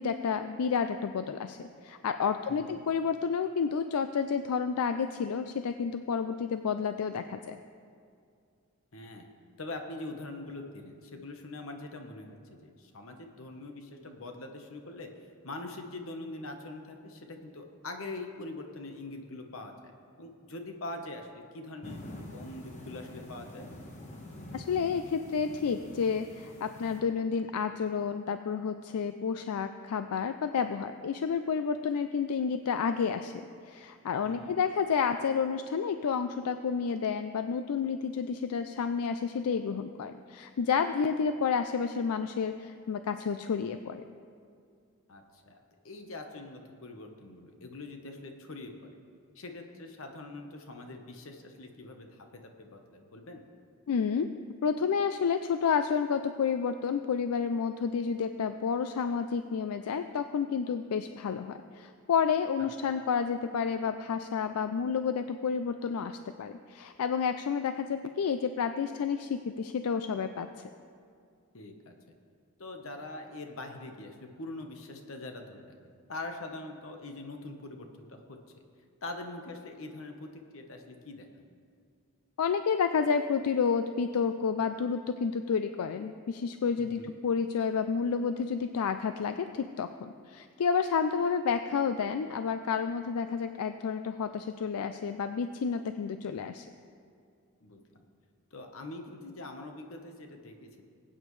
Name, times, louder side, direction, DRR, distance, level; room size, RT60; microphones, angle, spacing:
voice 1, 0.0-7.6 24.5-33.3 33.6-44.0 53.9-54.3 54.6-70.5 82.4-96.7, left 6 dB, 80° left, 9 dB, 0.4 m, -30 dB
voice 2, 2.5-2.8 8.9-9.3 9.6-15.1 15.4-19.7 20.2-22.0 22.3-23.7 34.2-34.6 45.1-49.0 49.3-53.4 71.5-71.9 72.6-75.7 76.1-78.4 79.0-81.5 86.8-87.1 97.6-97.8 98.5-100.8, left 2 dB, 65° left, 4 dB, 1.1 m, -43 dB
sound 1, 21.8-27.0, left 1 dB, 30° left, 1.2 m, -46 dB
21.0 x 8.7 x 3.2 m, 2.3 s
head